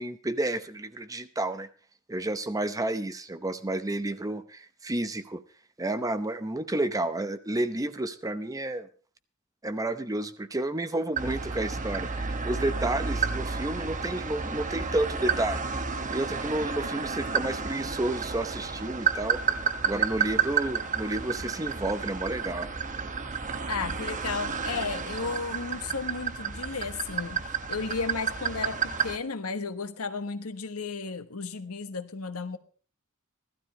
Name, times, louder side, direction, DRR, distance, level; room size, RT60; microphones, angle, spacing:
voice 1, 0.0-1.7 2.1-5.4 5.8-8.9 9.6-15.7 16.1-19.4 19.8-22.7, right 1 dB, 15° right, 11 dB, 0.7 m, -31 dB
sound 1, 11.2-29.2, right 5 dB, 35° right, 1.1 m, -31 dB
voice 2, 23.7-27.4 27.7-32.6, left 4 dB, 75° left, 9 dB, 1.3 m, -34 dB
16.0 x 12.5 x 4.2 m, 0.40 s
head